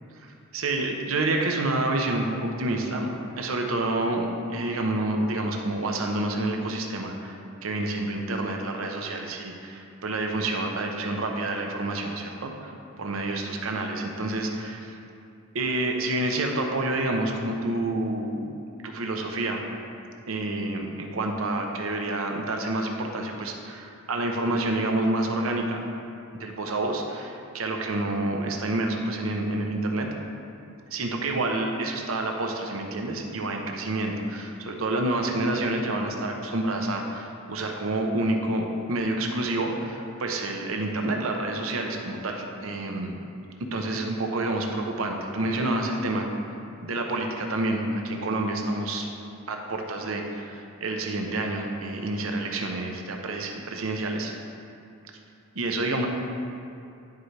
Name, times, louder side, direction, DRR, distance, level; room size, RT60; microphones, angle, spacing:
voice 1, 0.2-3.1 3.4-12.7 13.0-14.9 15.5-18.5 18.8-19.6 20.3-25.8 26.4-30.1 30.9-43.1 43.7-46.3 46.8-49.1 49.5-54.3 55.5-56.1, right 2 dB, 75° right, 2 dB, 0.8 m, -28 dB
10.5 x 4.6 x 3.3 m, 2.5 s
head